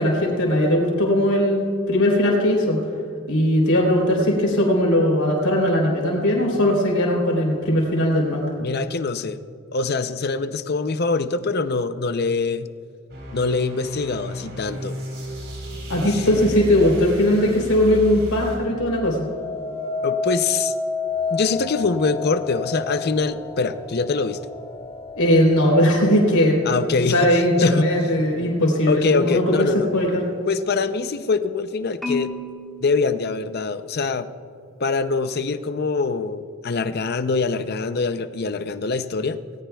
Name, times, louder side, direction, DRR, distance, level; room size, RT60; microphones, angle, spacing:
voice 1, 0.0-2.8 3.3-8.5 15.9-19.2 25.2-26.6 27.0-29.7 29.9-30.2, left 1 dB, 80° left, 0 dB, 3.7 m, -19 dB
voice 2, 8.6-9.4 9.7-12.7 13.3-15.0 16.1-16.3 20.0-20.7 21.3-24.4 26.7-27.9 28.9-29.9 30.5-32.3 32.8-34.3 34.8-39.4, left 4 dB, 45° left, 11 dB, 0.5 m, -24 dB
sound 1, 13.1-18.6, equal, 50° right, 4.0 m, -34 dB
sound 2, 19.1-28.2 28.8-29.2, left 4 dB, 25° left, 1.5 m, -31 dB
Marimba xylophone, 32.0-34.2, left 2 dB, ahead, 1.3 m, -33 dB
19.0 x 18.5 x 2.3 m, 2.5 s
head